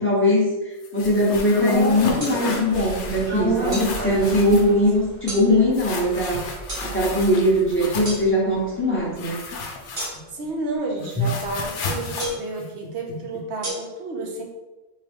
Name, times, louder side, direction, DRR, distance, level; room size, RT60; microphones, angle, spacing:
voice 1, 0.0-6.4 6.8-9.4 11.2-11.3, left 1 dB, 10° left, -7 dB, 0.8 m, -20 dB
sound 1, 0.8-3.3 3.6-4.7 5.7-8.2 9.2-10.5 10.7-13.4, left 3 dB, 85° left, 1.0 m, -34 dB
sound 2, 1.5-9.8 10.1-10.2, equal, 50° right, 1.2 m, -32 dB
sound 3, 2.2-2.4 3.7-3.9 5.3-5.5 6.7-6.9 8.0-8.2 9.9-10.4 12.2-12.5 13.6-13.7, right 1 dB, 30° right, 0.9 m, -30 dB
voice 2, 10.3-14.4, right 2 dB, 70° right, 1 dB, 1.0 m, -31 dB
3.7 x 2.2 x 3.4 m, 1.1 s
omnidirectional pair, 1.2 m